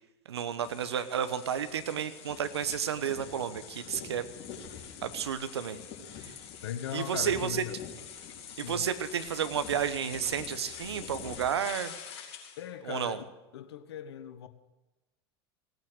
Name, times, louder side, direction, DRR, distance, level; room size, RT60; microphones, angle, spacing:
voice 1, 0.3-4.2 5.0-5.8 6.2-6.3 6.9-7.6 8.6-11.9 12.9-13.2, right 8 dB, 80° right, 1.0 m, -32 dB
sound 1, 0.6-12.7, left 8 dB, 50° left, 4.0 m, -45 dB
voice 2, 6.6-7.8 8.6-8.9 12.6-13.3 13.5-14.5, left 10 dB, 75° left, 1.3 m, -39 dB
17.5 x 9.2 x 8.0 m
hypercardioid pair, 85°, 14 cm